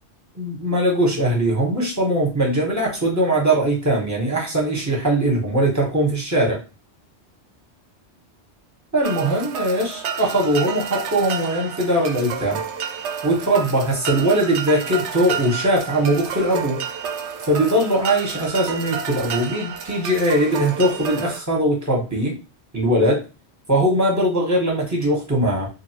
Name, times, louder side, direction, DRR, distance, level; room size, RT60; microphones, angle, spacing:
voice 1, 0.3-6.6 8.9-12.6 13.2-16.8 17.4-22.4 22.7-23.2 23.7-25.7, right 1 dB, 15° right, -2 dB, 1.0 m, -20 dB
sound 1, 9.0-21.4, right 7 dB, 90° right, 0.9 m, -30 dB
2.7 x 2.5 x 2.8 m, 0.31 s
omnidirectional pair, 1.1 m